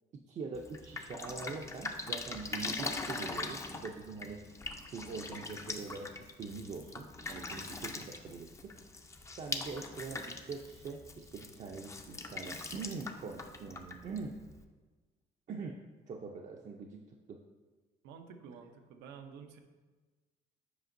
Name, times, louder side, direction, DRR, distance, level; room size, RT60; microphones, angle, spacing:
voice 1, 0.3-4.4 4.9-8.7 9.4-14.4 15.5-15.8 16.1-17.0 17.3-17.4, right 4 dB, 45° right, 1 dB, 0.5 m, -43 dB
Drip, 0.5-14.6, left 3 dB, 15° left, 0.5 m, -42 dB
voice 2, 18.0-19.6, right 6 dB, 90° right, 6 dB, 0.6 m, -50 dB
7.9 x 5.1 x 2.6 m, 1.3 s
cardioid pair, 110°, 17 cm